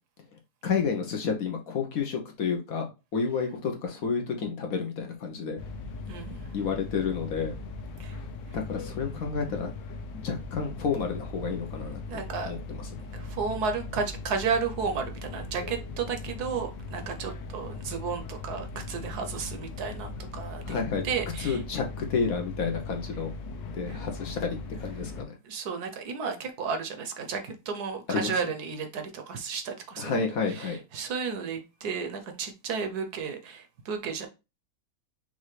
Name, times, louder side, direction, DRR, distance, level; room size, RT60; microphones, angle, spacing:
voice 1, 0.6-5.6 6.5-7.5 8.5-9.7 10.1-12.0 12.4-12.8 20.6-21.0 21.4-23.3 23.7-25.3 28.1-28.3 30.0-30.8, left 5 dB, 60° left, 3 dB, 1.1 m, -30 dB
sound 1, 5.6-25.2, left 3 dB, 90° left, 1.3 m, -39 dB
voice 2, 6.1-6.4 8.0-8.2 12.1-12.5 13.1-21.6 23.9-24.0 25.4-30.2 30.5-34.3, right 5 dB, 70° right, 6 dB, 1.2 m, -33 dB
5.7 x 2.5 x 3.1 m, 0.27 s
omnidirectional pair, 1.9 m